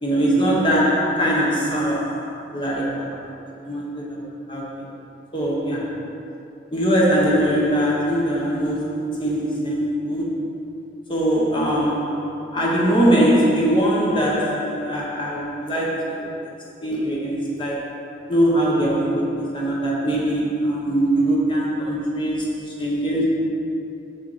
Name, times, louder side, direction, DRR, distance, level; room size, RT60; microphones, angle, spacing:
voice 1, 0.0-2.3 2.5-3.4 3.6-4.8 5.3-6.0 6.7-10.6 11.1-16.3 16.8-18.0 18.3-23.3, right 1 dB, 25° left, -4 dB, 1.2 m, -22 dB
7.4 x 6.7 x 5.0 m, 2.8 s
head